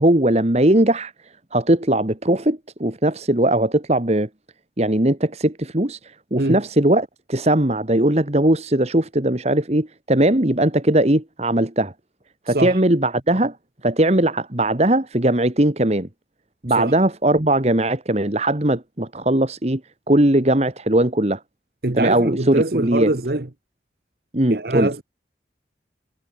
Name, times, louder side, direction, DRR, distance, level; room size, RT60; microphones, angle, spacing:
voice 1, 0.0-4.3 4.8-11.9 12.5-13.6 13.8-16.1 16.6-19.8 20.1-21.4 21.9-23.1 24.3-24.9, right 1 dB, 35° right, 1.8 m, -19 dB
voice 2, 12.5-12.8 16.8-16.9 21.8-23.5 24.5-25.0, right 2 dB, 60° right, 1.3 m, -23 dB
head